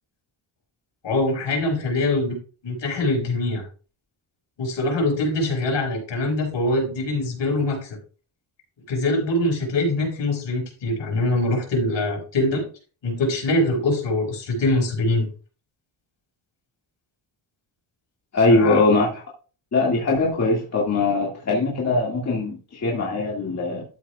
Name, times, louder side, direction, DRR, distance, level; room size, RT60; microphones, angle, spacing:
voice 1, 1.0-2.4 2.6-3.7 4.6-8.0 8.9-12.7 13.0-15.3 18.5-18.8, left 2 dB, 65° left, 1 dB, 5.3 m, -23 dB
voice 2, 18.3-19.2 19.7-23.8, left 3 dB, 35° left, -3 dB, 2.2 m, -21 dB
12.5 x 8.5 x 2.4 m, 0.36 s
wide cardioid pair, 170°, 47 cm